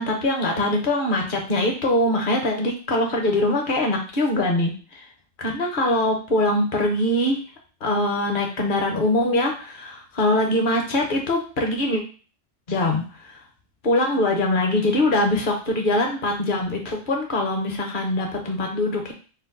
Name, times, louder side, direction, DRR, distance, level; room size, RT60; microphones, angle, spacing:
voice 1, 0.0-5.1 5.4-7.4 7.8-12.0 12.7-13.4 13.8-19.1, left 1 dB, 45° left, 2 dB, 1.0 m, -23 dB
4.4 x 2.2 x 3.9 m, 0.38 s
omnidirectional pair, 1.3 m